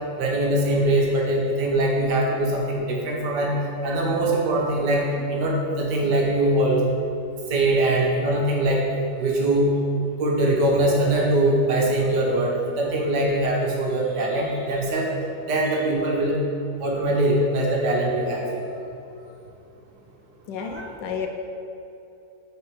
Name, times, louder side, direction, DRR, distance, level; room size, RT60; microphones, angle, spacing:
voice 1, 0.2-6.8 7.5-8.9 9.2-9.7 10.2-15.1 15.4-16.3 16.8-18.5 20.6-20.9, right 1 dB, 70° right, -1 dB, 1.6 m, -22 dB
voice 2, 20.5-21.3, left 6 dB, 75° left, 4 dB, 1.3 m, -31 dB
6.8 x 4.1 x 4.7 m, 2.8 s
omnidirectional pair, 2.0 m